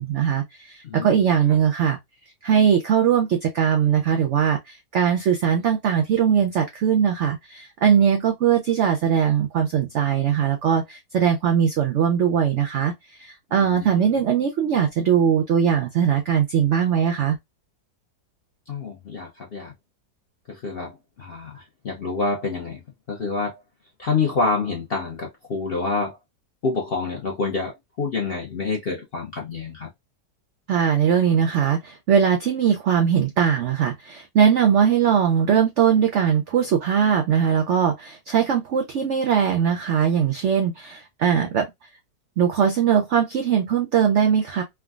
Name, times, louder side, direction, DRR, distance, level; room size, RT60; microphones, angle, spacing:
voice 1, 0.0-2.0 2.4-12.9 13.2-17.4 30.7-41.7 42.4-44.6, right 8 dB, 75° right, 0.6 m, -20 dB
voice 2, 0.8-1.2 1.5-1.6 13.6-14.1 18.7-19.7 20.5-22.8 23.1-23.6 24.0-26.2 26.6-29.9, left 4 dB, 55° left, 0.6 m, -27 dB
3.5 x 2.2 x 2.3 m
omnidirectional pair, 1.8 m